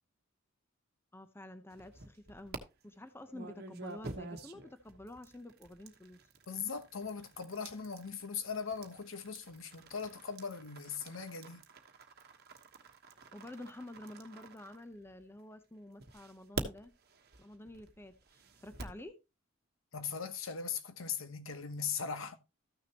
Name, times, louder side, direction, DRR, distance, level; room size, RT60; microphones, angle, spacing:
voice 1, 1.1-6.2 13.3-16.9 17.4-19.1, left 1 dB, 10° left, 0.7 m, -49 dB
sound 1, 1.7-2.6 3.3-15.4 16.0-19.0, right 3 dB, 50° right, 1.2 m, -47 dB
voice 2, 6.5-11.6 19.9-22.4, left 6 dB, 75° left, 1.1 m, -39 dB
13.5 x 6.4 x 2.9 m
head